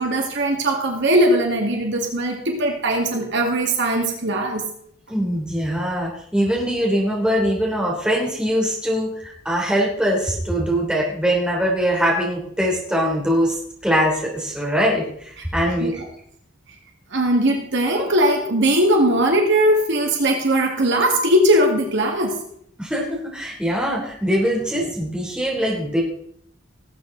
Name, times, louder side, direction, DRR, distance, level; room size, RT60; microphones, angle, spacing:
voice 1, 0.0-4.6 15.8-16.1 17.1-22.4, right 1 dB, 60° right, 2 dB, 2.2 m, -19 dB
voice 2, 5.1-13.6 13.8-15.9 22.8-26.0, equal, 5° right, -3 dB, 3.3 m, -22 dB
18.5 x 8.2 x 3.9 m, 0.66 s
head